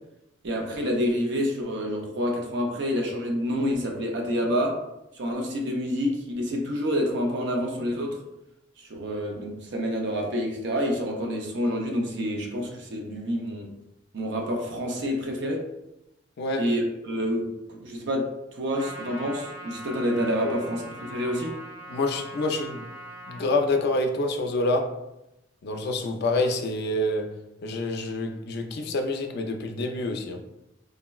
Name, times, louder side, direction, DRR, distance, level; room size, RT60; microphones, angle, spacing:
voice 1, 0.4-4.8 5.1-8.2 8.8-13.7 14.1-15.7 16.6-18.3 18.6-21.5, equal, 65° right, 1 dB, 0.5 m, -28 dB
Trumpet, 18.8-23.5, right 1 dB, 30° right, 0.9 m, -41 dB
voice 2, 21.9-22.8 23.3-25.0 25.6-27.3 27.6-30.4, left 2 dB, 60° left, 4 dB, 0.4 m, -27 dB
3.5 x 2.0 x 2.2 m, 0.89 s
head